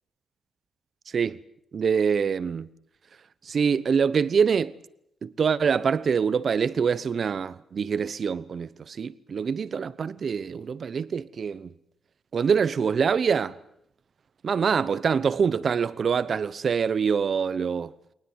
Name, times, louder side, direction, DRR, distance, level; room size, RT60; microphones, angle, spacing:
voice 1, 1.7-2.7 3.4-4.7 5.2-11.7 12.3-13.6 14.4-17.9, right 6 dB, 55° right, 0.9 m, -25 dB
24.0 x 19.0 x 8.0 m
cardioid pair, 95°, 0 cm